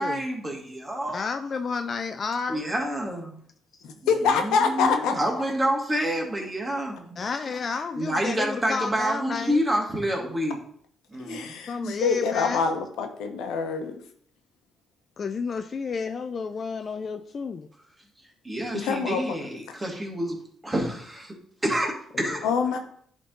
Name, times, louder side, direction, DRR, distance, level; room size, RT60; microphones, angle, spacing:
voice 1, 0.0-1.2 2.5-3.4 4.2-7.2 7.9-10.6 11.1-11.5 11.8-12.0 18.4-20.4 20.6-21.3 21.6-22.4, right 1 dB, 15° right, 2.2 m, -28 dB
voice 2, 1.1-2.7 7.2-9.6 11.7-12.6 15.2-17.7 22.1-22.4, left 5 dB, 45° left, 0.4 m, -31 dB
voice 3, 3.8-5.2 11.2-13.9 18.7-19.4 22.4-22.8, left 5 dB, 90° left, 1.0 m, -25 dB
10.5 x 3.7 x 3.9 m
cardioid pair, 90°, 0 cm